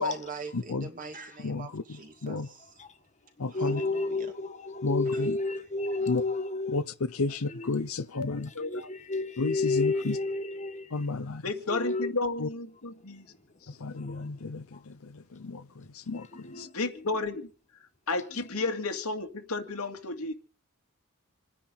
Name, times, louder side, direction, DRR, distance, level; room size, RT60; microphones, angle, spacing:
voice 1, 0.0-2.8 3.5-4.2 5.1-5.2 6.0-6.1, right 4 dB, 40° right, 2.3 m, -42 dB
voice 2, 0.5-0.9 1.4-1.8 2.2-2.5 3.4-3.8 4.8-5.4 6.1-6.2 6.7-6.8 7.1-8.5 9.4-10.2 10.9-11.4 12.4-12.5 13.8-16.3 16.6-16.7, left 3 dB, 70° left, 0.8 m, -32 dB
voice 3, 3.4-6.8 7.5-7.9 8.3-11.2 11.7-12.1 13.2-13.4 13.6-14.3 14.7-14.8 16.1-17.3 18.3-18.7, left 3 dB, 35° left, 1.8 m, -33 dB
voice 4, 8.1-8.8 11.4-13.2 16.7-17.5 18.1-20.3, left 3 dB, 90° left, 2.3 m, -32 dB
28.0 x 10.0 x 4.0 m
head